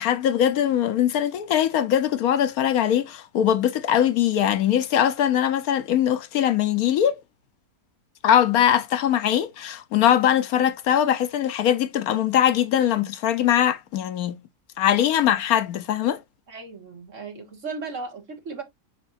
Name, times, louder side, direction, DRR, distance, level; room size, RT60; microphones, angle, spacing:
voice 1, 0.0-7.2 8.2-14.4 14.8-16.2, left 10 dB, 70° left, 1.1 m, -21 dB
voice 2, 16.5-18.6, right 4 dB, 50° right, 2.1 m, -36 dB
7.8 x 4.9 x 2.5 m
omnidirectional pair, 1.7 m